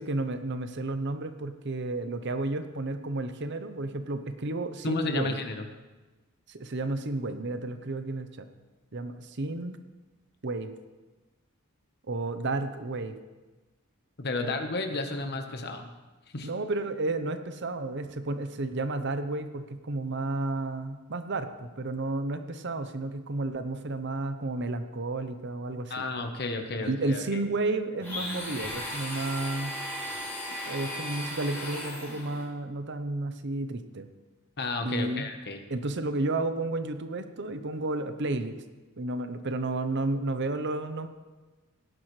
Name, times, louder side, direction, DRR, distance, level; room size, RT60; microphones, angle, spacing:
voice 1, 0.0-5.4 6.5-8.5 8.9-9.8 10.4-10.7 12.1-13.1 14.4-14.5 16.4-26.0 26.8-29.7 30.7-34.1 34.8-35.3 35.7-38.6 39.0-41.1, right 2 dB, 55° right, 9 dB, 0.8 m, -32 dB
voice 2, 4.8-5.6 14.2-15.9 16.3-16.5 25.9-27.4 34.6-35.6, left 3 dB, 50° left, 6 dB, 1.2 m, -32 dB
Domestic sounds home sounds, 28.0-32.4, left 1 dB, 10° left, 3.3 m, -36 dB
17.5 x 10.5 x 3.3 m, 1.2 s
head